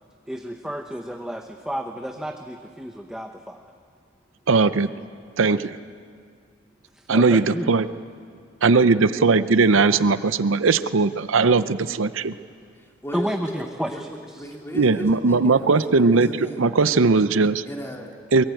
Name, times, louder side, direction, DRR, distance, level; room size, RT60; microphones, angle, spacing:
voice 1, 0.3-3.6 6.9-7.7 13.1-14.5, equal, 5° right, 4 dB, 0.8 m, -31 dB
voice 2, 4.5-4.9 5.4-5.8 7.1-7.9 8.6-12.3 14.7-16.3 16.6-17.6 18.3-18.4, right 4 dB, 75° right, 13 dB, 0.6 m, -19 dB
voice 3, 12.7-16.7 17.6-18.1, equal, 10° left, 1 dB, 2.5 m, -35 dB
23.0 x 23.0 x 9.1 m, 2.2 s
head